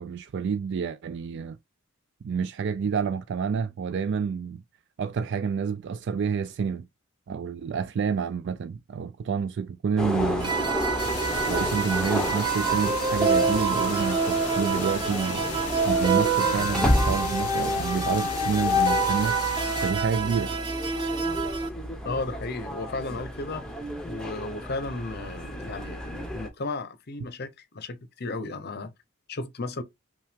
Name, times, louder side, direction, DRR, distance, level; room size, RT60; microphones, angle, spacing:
voice 1, 0.0-1.6 2.2-4.6 5.0-6.9 7.3-10.7 11.5-15.4 15.9-19.4 19.8-20.6, right 6 dB, 55° right, 0.3 m, -29 dB
sound 1, 10.0-26.5, equal, 5° left, 0.7 m, -32 dB
sound 2, 10.4-21.7, right 3 dB, 20° right, 1.0 m, -26 dB
sound 3, 11.0-19.9, left 10 dB, 85° left, 0.4 m, -37 dB
voice 2, 22.0-23.8 24.0-27.5 27.7-28.9 29.3-29.8, left 3 dB, 45° left, 0.6 m, -34 dB
5.6 x 2.3 x 3.4 m
head